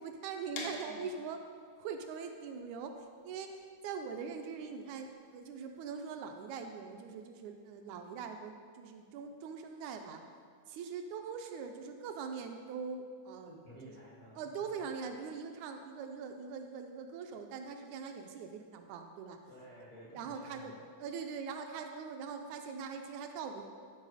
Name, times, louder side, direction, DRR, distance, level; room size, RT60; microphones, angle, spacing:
voice 1, 0.0-1.4 1.8-10.2 10.7-13.6 13.8-14.0 14.4-19.4 20.1-20.7 21.0-23.8, right 5 dB, 80° right, 5 dB, 1.8 m, -42 dB
sound 1, 0.6-6.3, left 3 dB, 90° left, 2.6 m, -49 dB
voice 2, 13.5-14.9 19.5-20.8, equal, 75° left, -6 dB, 0.5 m, -54 dB
11.5 x 4.5 x 4.8 m, 2.1 s
omnidirectional pair, 3.6 m